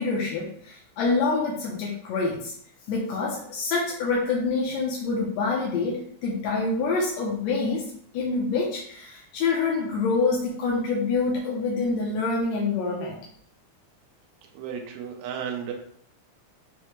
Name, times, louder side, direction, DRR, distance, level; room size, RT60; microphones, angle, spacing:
voice 1, 0.0-2.5 2.9-7.9 8.1-13.2, left 4 dB, 80° left, -3 dB, 1.8 m, -26 dB
voice 2, 14.5-15.7, right 8 dB, 75° right, 2 dB, 1.9 m, -33 dB
5.7 x 2.1 x 3.1 m, 0.64 s
omnidirectional pair, 3.5 m